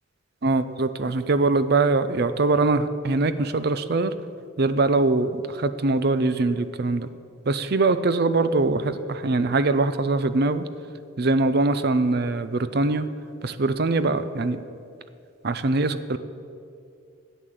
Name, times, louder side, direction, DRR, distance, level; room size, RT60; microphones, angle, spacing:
voice 1, 0.4-4.1 4.6-7.1 7.5-10.6 11.2-13.1 13.4-14.6 15.4-16.2, right 3 dB, 50° right, 12 dB, 0.5 m, -22 dB
11.0 x 8.4 x 7.8 m, 2.4 s
head